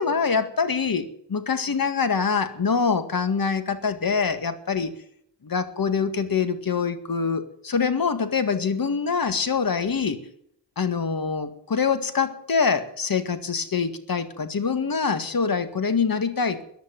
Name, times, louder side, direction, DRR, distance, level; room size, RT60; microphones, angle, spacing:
voice 1, 0.0-4.9 5.4-10.2 10.8-16.6, left 5 dB, 50° left, 10 dB, 1.9 m, -24 dB
15.0 x 10.5 x 9.0 m, 0.67 s
cardioid pair, 85°, 44 cm